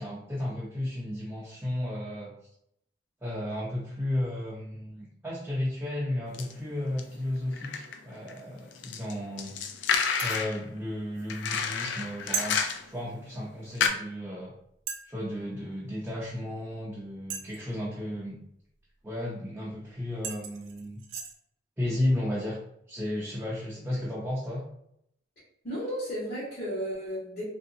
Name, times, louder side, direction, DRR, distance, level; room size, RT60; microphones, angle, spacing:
voice 1, 0.0-2.3 3.2-9.5 10.2-12.6 12.9-14.5 15.1-18.4 19.0-21.0 21.8-22.6 22.9-24.6, left 1 dB, 10° right, -7 dB, 0.5 m, -33 dB
sound 1, 6.3-6.5 7.0-8.4 8.7-10.6 11.3-13.0 13.3-13.4 13.8-13.9, left 6 dB, 70° left, 0.4 m, -30 dB
sound 2, 10.2-10.5 12.3-12.5 13.9-14.0 14.9-15.1 17.3-17.7 19.7-19.8 20.2-21.3, right 6 dB, 80° right, 0.4 m, -36 dB
voice 2, 25.6-27.4, equal, 45° left, -12 dB, 1.2 m, -34 dB
3.1 x 2.7 x 2.6 m, 0.74 s
head